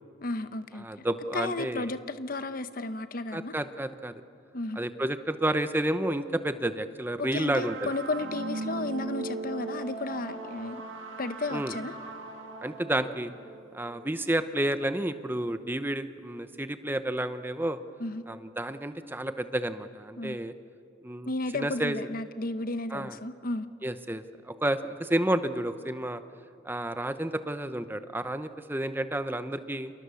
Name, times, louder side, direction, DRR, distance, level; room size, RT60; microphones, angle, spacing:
voice 1, 0.2-1.1 1.3-3.5 4.5-4.8 7.2-10.8 11.2-11.9 18.0-18.2 20.2-20.4 21.2-23.7, left 2 dB, 45° left, 11 dB, 0.9 m, -33 dB
voice 2, 0.8-1.9 3.3-4.2 4.8-7.9 11.5-11.7 12.6-13.3 13.7-17.8 18.3-20.5 21.0-22.0 22.9-23.2 23.8-26.2 26.6-29.9, right 1 dB, 10° right, 10 dB, 0.8 m, -30 dB
sound 1, 7.5-14.3, right 3 dB, 75° right, 2.3 m, -39 dB
30.0 x 27.5 x 7.0 m, 2.4 s
head